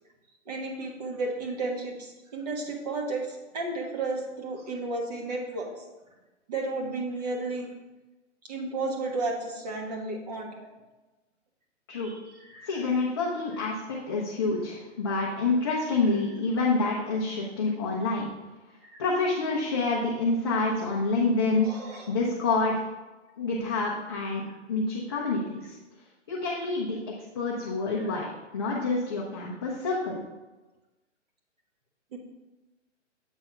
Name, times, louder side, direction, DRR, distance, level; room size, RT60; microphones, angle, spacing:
voice 1, 0.5-5.7 6.5-7.7 8.4-10.7 11.9-12.8 18.8-19.0 21.6-22.2 28.1-28.2 32.1-32.2, right 3 dB, 35° right, 1 dB, 1.3 m, -33 dB
voice 2, 12.6-18.3 19.0-21.7 22.1-22.9 23.4-24.4 24.7-25.7 26.3-27.0 27.3-28.3 28.5-30.2, left 3 dB, 20° left, -4 dB, 0.6 m, -27 dB
7.9 x 3.4 x 5.6 m, 1.1 s
hypercardioid pair, 165°, 37 cm